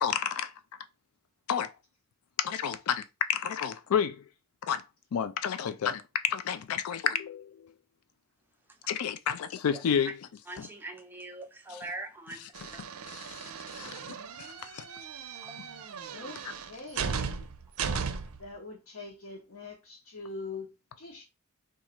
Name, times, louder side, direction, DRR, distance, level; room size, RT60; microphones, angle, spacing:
voice 1, 0.0-0.5 1.5-1.7 2.4-4.2 4.6-4.8 5.1-7.7 8.9-10.7 11.7-11.9 12.3-12.7 13.1-14.9 15.6-15.7, left 8 dB, 80° left, 0.3 m, -31 dB
voice 2, 10.5-12.4 15.4-15.8, right 2 dB, 10° right, 0.4 m, -42 dB
sound 1, 12.5-18.5, right 6 dB, 75° right, 0.5 m, -37 dB
voice 3, 16.1-17.5 18.4-21.2, left 3 dB, 65° left, 0.8 m, -43 dB
2.9 x 2.4 x 4.2 m
head